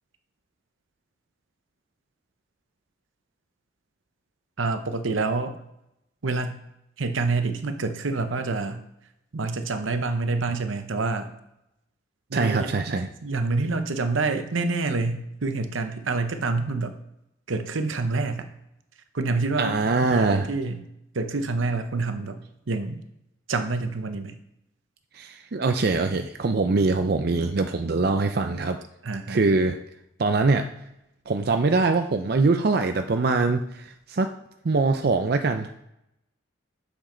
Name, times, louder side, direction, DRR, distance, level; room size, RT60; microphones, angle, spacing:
voice 1, 4.6-5.5 6.2-6.6 7.0-8.8 9.3-11.3 12.3-12.9 13.2-17.0 17.5-18.5 19.1-19.8 20.0-20.8 21.1-22.4 22.7-23.0 23.5-24.4 29.0-29.4, right 3 dB, 80° right, 8 dB, 0.8 m, -27 dB
voice 2, 12.3-13.1 19.6-20.5 25.2-28.8 29.3-29.8 30.2-30.7 31.3-34.3 34.6-35.7, right 3 dB, 50° right, 7 dB, 0.5 m, -23 dB
7.3 x 7.1 x 3.9 m, 0.84 s
head